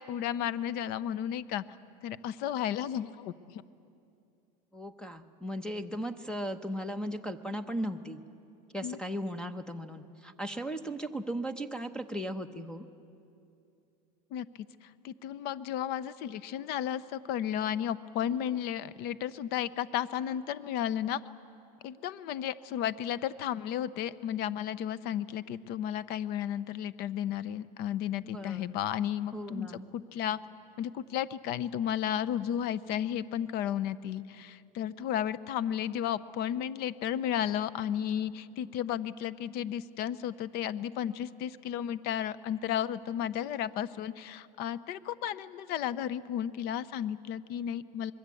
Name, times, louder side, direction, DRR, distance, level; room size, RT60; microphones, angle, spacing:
voice 1, 0.0-1.6 2.0-3.6 8.8-9.0 14.3-21.2 21.8-30.4 30.8-48.1, left 10 dB, 50° left, 16 dB, 0.7 m, -33 dB
voice 2, 4.7-8.2 8.7-12.8 28.2-28.7 29.3-29.9, equal, 5° left, 9 dB, 0.9 m, -37 dB
25.5 x 22.5 x 8.4 m, 2.6 s
supercardioid pair, 135°, 20 cm